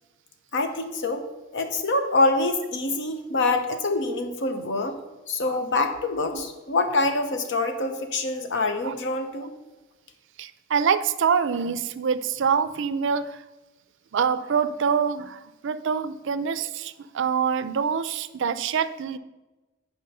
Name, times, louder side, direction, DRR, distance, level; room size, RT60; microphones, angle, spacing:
voice 1, 0.5-1.3 1.5-5.0 5.3-9.5, left 2 dB, 65° left, 7 dB, 0.9 m, -25 dB
voice 2, 10.4-13.3 14.1-19.2, right 6 dB, 65° right, 14 dB, 0.4 m, -25 dB
10.0 x 4.6 x 5.4 m, 1.1 s
head